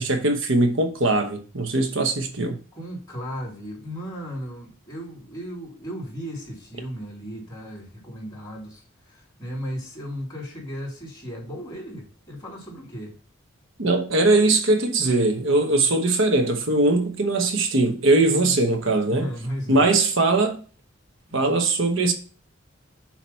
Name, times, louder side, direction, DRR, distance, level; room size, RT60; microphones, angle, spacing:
voice 1, 0.0-2.6 13.8-19.3 19.7-20.6 21.3-22.1, right 2 dB, 70° right, 1.0 m, -21 dB
voice 2, 2.7-13.1 18.3-18.8 19.1-19.9 21.3-21.4, equal, 20° left, 3.4 m, -35 dB
7.2 x 3.0 x 5.5 m
head